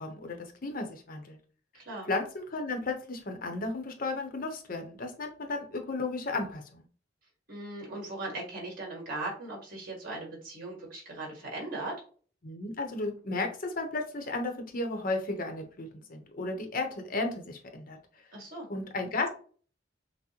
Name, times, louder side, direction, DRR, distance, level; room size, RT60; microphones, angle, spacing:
voice 1, 0.0-1.4 2.1-6.8 12.4-18.0 18.7-19.3, left 2 dB, 50° left, 5 dB, 0.7 m, -34 dB
voice 2, 1.7-2.1 7.5-12.0 18.3-18.7, right 2 dB, 50° right, -1 dB, 1.9 m, -38 dB
6.0 x 2.0 x 2.9 m, 0.41 s
head